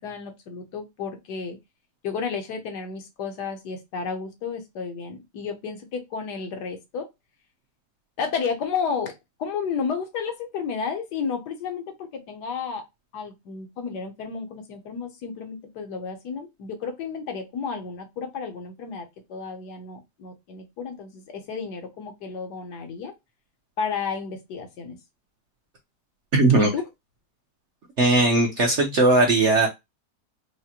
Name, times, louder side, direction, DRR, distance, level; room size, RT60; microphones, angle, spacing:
voice 1, 0.0-1.6 2.0-7.1 8.2-9.1 9.4-12.9 13.1-23.1 23.8-25.0 26.6-26.8, left 5 dB, 70° left, 5 dB, 1.4 m, -32 dB
voice 2, 26.3-26.7 28.0-29.7, right 2 dB, 55° right, 1 dB, 0.9 m, -18 dB
4.9 x 2.1 x 2.8 m, 0.20 s
omnidirectional pair, 1.9 m